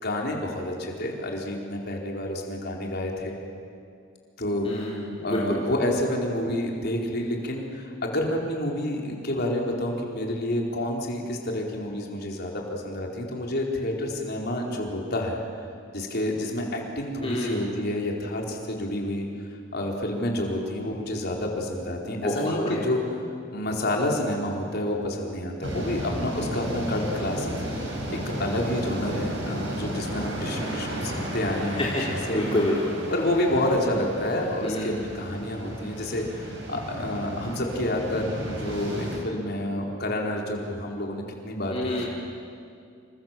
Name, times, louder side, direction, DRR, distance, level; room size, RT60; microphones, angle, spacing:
voice 1, 0.0-3.3 4.4-15.4 15.9-19.3 19.7-23.0 23.5-32.5 33.1-42.1, left 1 dB, 50° left, 0 dB, 4.5 m, -29 dB
voice 2, 4.6-5.6 17.2-17.6 22.0-22.8 31.8-32.9 34.6-35.1 41.7-42.1, left 1 dB, 30° left, -5 dB, 3.6 m, -28 dB
sound 1, 25.6-39.2, equal, 65° right, 6.9 m, -34 dB
28.0 x 26.0 x 7.7 m, 2.4 s
head